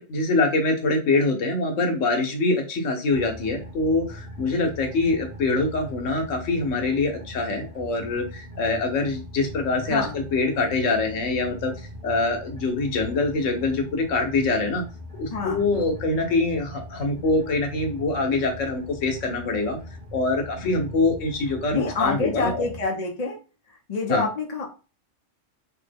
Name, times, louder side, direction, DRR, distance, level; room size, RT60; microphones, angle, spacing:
voice 1, 0.0-11.7 12.0-14.8 15.2-19.8 20.1-22.6 24.1-24.2, left 3 dB, 80° left, 4 dB, 1.2 m, -24 dB
sound 1, 3.1-22.9, equal, 40° right, 1.1 m, -40 dB
voice 2, 15.3-15.9 20.6-20.8 21.7-23.4 23.9-24.7, left 3 dB, 40° left, 0 dB, 0.7 m, -28 dB
3.2 x 2.1 x 3.3 m, 0.33 s
omnidirectional pair, 1.3 m